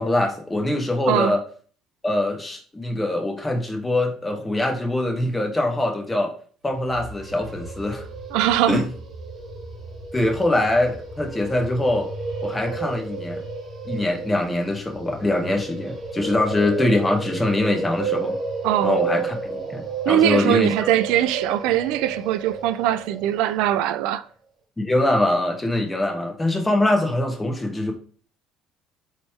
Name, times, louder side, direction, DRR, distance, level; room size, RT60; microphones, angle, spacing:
voice 1, 0.0-1.4 2.0-6.3 6.6-8.1 8.7-8.9 10.1-12.1 12.4-13.4 13.9-18.4 18.8-20.7 24.8-27.9, left 1 dB, 15° left, 1.2 m, -23 dB
voice 2, 1.1-1.4 8.3-8.8 18.6-19.0 20.1-24.3, right 12 dB, 75° right, 0.4 m, -21 dB
sound 1, 6.7-23.7, right 4 dB, 40° right, 1.8 m, -32 dB
4.0 x 3.1 x 3.4 m
hypercardioid pair, 70°, 0 cm